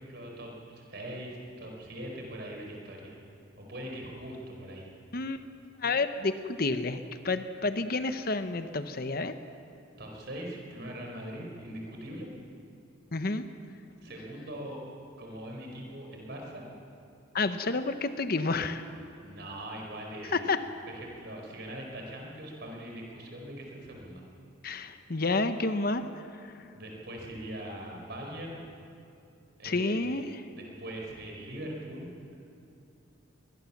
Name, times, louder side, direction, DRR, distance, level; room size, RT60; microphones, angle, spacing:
voice 1, 0.0-3.2 3.6-4.9 10.0-12.3 14.0-14.8 15.2-16.6 19.2-20.4 20.9-24.2 26.7-28.6 29.6-32.1, right 1 dB, 50° right, 1 dB, 4.7 m, -41 dB
voice 2, 5.1-5.4 5.8-7.0 7.2-9.3 13.1-13.4 17.3-18.8 20.3-20.6 24.6-26.0 29.6-30.2, left 3 dB, 45° left, 10 dB, 0.9 m, -29 dB
22.5 x 20.0 x 7.3 m, 2.6 s
head